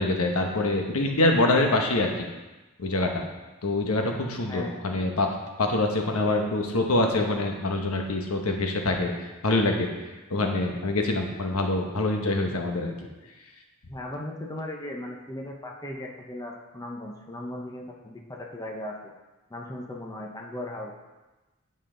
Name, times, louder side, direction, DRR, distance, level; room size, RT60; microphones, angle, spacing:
voice 1, 0.0-2.3 2.8-3.2 3.6-5.3 5.6-9.9 10.3-12.9, left 2 dB, 80° left, 3 dB, 1.0 m, -25 dB
voice 2, 4.5-5.0 12.4-12.6 13.9-19.1 19.5-20.9, left 1 dB, 15° left, 0 dB, 0.7 m, -37 dB
9.1 x 5.5 x 3.8 m, 1.1 s
head